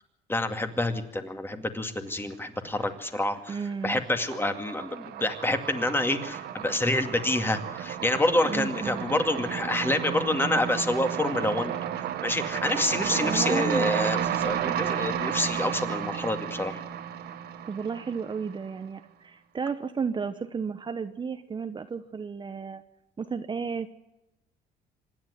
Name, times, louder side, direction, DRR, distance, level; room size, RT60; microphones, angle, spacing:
voice 1, 0.3-3.6 3.8-16.8, left 1 dB, 15° left, 7 dB, 2.3 m, -28 dB
sound 1, 2.4-3.2 3.5-18.7, right 9 dB, 75° right, 1.7 m, -32 dB
voice 2, 3.5-4.0 8.4-9.0 13.2-13.9 14.6-14.7 17.6-22.8 23.2-23.9, right 5 dB, 25° right, 9 dB, 1.0 m, -33 dB
25.5 x 10.5 x 9.9 m, 0.92 s
cardioid pair, 110°, 17 cm